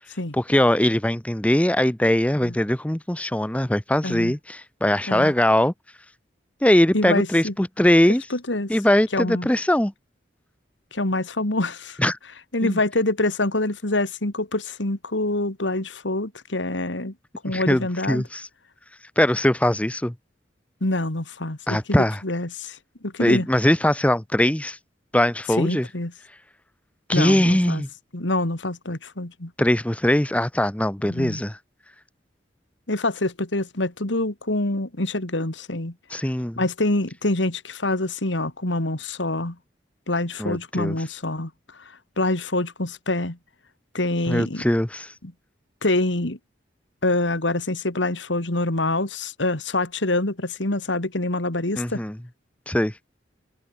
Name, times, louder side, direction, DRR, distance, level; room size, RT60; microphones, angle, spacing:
voice 1, 0.3-5.7 6.6-8.2 8.7-9.9 12.0-12.2 12.6-12.8 17.5-18.5 19.2-20.1 21.7-22.2 23.2-24.8 25.1-25.9 27.1-27.9 29.6-31.6 36.1-36.6 40.4-41.0 44.3-45.1 51.8-52.2 52.7-53.0, left 1 dB, 5° left, 0.7 m, -21 dB
voice 2, 4.0-4.3 5.1-5.3 6.9-7.5 8.3-8.7 9.1-9.5 10.9-12.0 12.5-17.1 17.4-18.2 20.8-21.8 22.2-22.8 23.0-23.5 25.6-26.1 27.1-27.8 28.1-29.5 31.1-31.4 32.9-35.9 36.6-39.6 40.1-41.5 42.2-43.4 43.9-44.6 45.8-46.4 47.0-52.0, left 2 dB, 85° left, 2.7 m, -25 dB
head